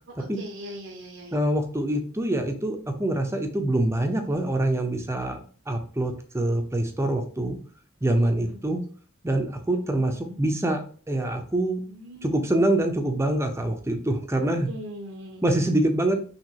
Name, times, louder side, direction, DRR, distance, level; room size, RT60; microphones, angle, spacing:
voice 1, 0.1-1.4 8.2-8.7 9.9-10.4 11.9-12.7 14.4-15.5, equal, 60° right, 1 dB, 0.8 m, -41 dB
voice 2, 1.3-5.4 5.7-7.6 8.0-8.8 9.2-10.8 11.1-11.8 12.2-14.7 15.4-16.2, right 1 dB, 15° right, 5 dB, 0.7 m, -25 dB
6.0 x 2.9 x 2.8 m, 0.43 s
head